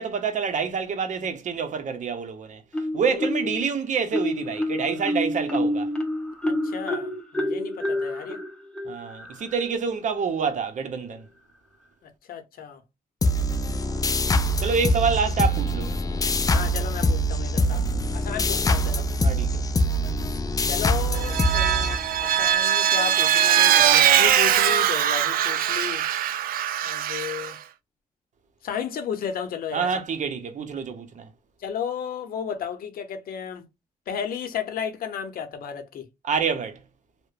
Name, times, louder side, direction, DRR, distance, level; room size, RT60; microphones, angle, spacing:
voice 1, 0.0-2.6 2.9-5.9 8.8-11.2 13.8-14.0 14.6-16.0 19.2-19.5 29.7-31.3 36.2-36.8, right 6 dB, 55° right, 0.8 m, -27 dB
Marimba xylophone, 2.7-3.7 4.1-9.6, left 1 dB, 5° left, 0.8 m, -28 dB
voice 2, 2.9-3.3 6.4-8.4 12.0-12.8 16.5-19.1 20.7-26.1 26.8-27.6 28.6-29.9 31.6-33.6 34.1-36.1, left 8 dB, 70° left, 0.7 m, -33 dB
sound 1, 13.2-22.4, equal, 25° left, 0.3 m, -24 dB
Vehicle, 21.1-27.5, right 10 dB, 70° right, 0.4 m, -21 dB
2.8 x 2.1 x 2.4 m
cardioid pair, 85°, 15 cm